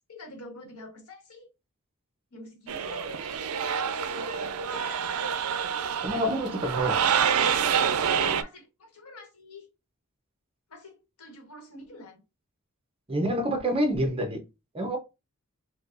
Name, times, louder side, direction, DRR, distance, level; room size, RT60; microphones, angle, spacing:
voice 1, 0.1-1.5 2.3-3.5 3.8-5.0 6.8-7.1 8.2-9.7 10.7-12.2, left 1 dB, 85° left, 1.3 m, -46 dB
sound 1, 2.7-8.4, right 7 dB, 80° right, 0.4 m, -27 dB
voice 2, 6.0-7.0 13.1-14.4 14.7-15.0, right 1 dB, 25° right, 0.8 m, -27 dB
4.5 x 2.3 x 2.5 m
head